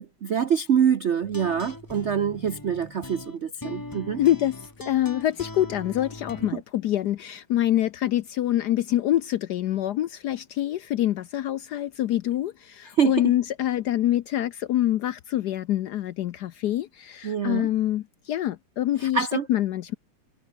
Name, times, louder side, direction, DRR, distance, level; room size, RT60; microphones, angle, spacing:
voice 1, 0.0-4.2 13.0-13.1 17.2-17.7 19.0-19.5, right 7 dB, 65° right, 0.7 m, -25 dB
sound 1, 1.2-6.5, left 2 dB, 10° left, 1.1 m, -40 dB
voice 2, 4.2-19.9, left 13 dB, 70° left, 1.0 m, -25 dB
omnidirectional pair, 2.3 m